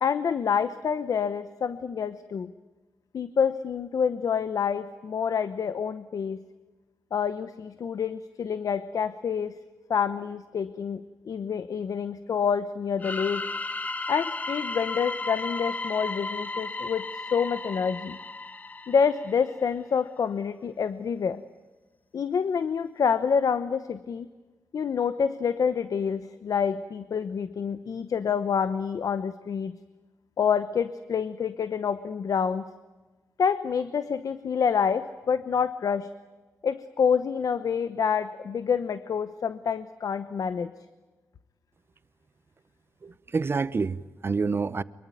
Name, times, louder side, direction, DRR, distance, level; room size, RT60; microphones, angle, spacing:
voice 1, 0.0-2.5 3.1-6.4 7.1-9.6 9.9-13.5 14.1-18.2 18.9-21.4 22.1-24.3 24.7-29.8 30.4-32.6 33.4-36.1 36.6-40.7, left 6 dB, 70° left, 0.9 m, -27 dB
sound 1, 13.0-19.7, left 3 dB, 25° left, 0.8 m, -34 dB
voice 2, 43.0-44.8, right 4 dB, 40° right, 0.9 m, -28 dB
24.5 x 23.0 x 9.1 m
wide cardioid pair, 130°, 6 cm